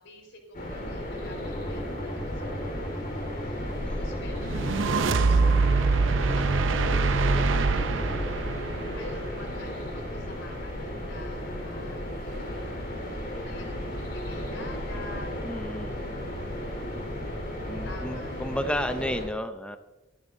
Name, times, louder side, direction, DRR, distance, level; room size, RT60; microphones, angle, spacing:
voice 1, 0.0-8.5 8.9-13.0 13.4-15.5 16.0-16.6 17.8-18.6, left 1 dB, 80° left, 2 dB, 4.6 m, -48 dB
sound 1, 0.5-19.3, left 1 dB, 50° left, 4.1 m, -34 dB
sound 2, 1.4-8.3, equal, 30° left, 1.1 m, -38 dB
voice 2, 3.8-4.3 15.4-16.0 17.7-19.8, left 1 dB, 5° left, 8 dB, 0.6 m, -32 dB
sound 3, 4.4-9.7, right 4 dB, 75° right, 0.6 m, -24 dB
23.0 x 12.0 x 2.7 m, 1.1 s
head